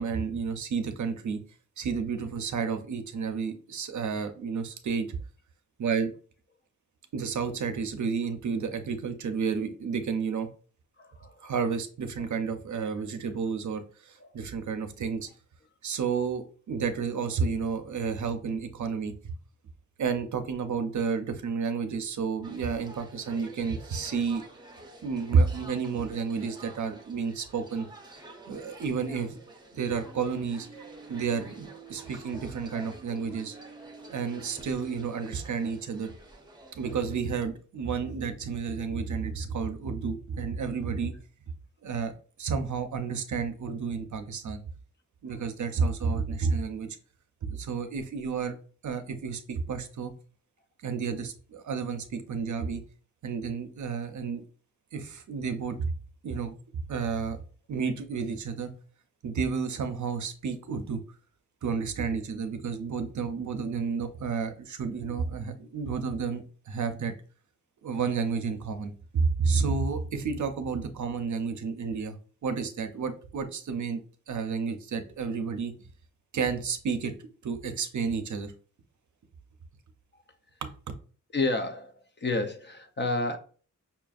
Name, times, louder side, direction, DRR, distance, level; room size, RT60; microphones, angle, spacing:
voice 1, 0.0-1.4 1.8-5.1 5.8-6.1 7.1-10.5 11.4-15.3 15.8-19.1 20.0-24.4 25.0-27.9 28.5-29.4 29.7-30.7 31.1-33.6 34.1-36.1 36.8-41.1 41.8-42.1 42.4-44.6 45.2-47.0 47.4-48.6 48.8-50.1 50.8-52.8 53.2-54.4 54.9-55.9 56.2-56.6 56.9-57.4 57.7-58.7 59.2-61.0 61.6-67.1 67.8-72.2 72.4-74.0 74.3-75.7 76.3-77.1 77.4-78.5 80.6-80.7, right 5 dB, 65° right, 8 dB, 0.6 m, -31 dB
voice 2, 11.0-11.5 12.2-12.3 14.2-14.4 81.3-83.4, left 2 dB, 35° left, 7 dB, 0.5 m, -31 dB
sound 1, 22.4-37.2, right 2 dB, 15° right, 0.6 m, -50 dB
sound 2, 29.7-34.9, right 6 dB, 70° left, 1.7 m, -51 dB
5.6 x 2.5 x 2.3 m, 0.40 s
wide cardioid pair, 165°, 33 cm